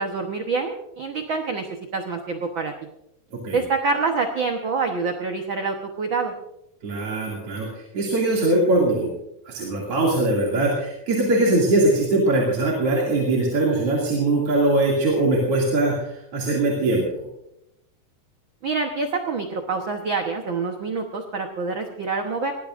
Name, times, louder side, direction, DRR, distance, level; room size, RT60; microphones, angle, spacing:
voice 1, 0.0-1.6 1.9-2.7 3.5-6.3 18.6-22.5, right 4 dB, 65° right, 4 dB, 1.2 m, -26 dB
voice 2, 6.8-9.1 9.5-17.2, right 2 dB, 45° right, -3 dB, 3.3 m, -21 dB
20.5 x 18.5 x 2.6 m, 0.84 s
omnidirectional pair, 3.9 m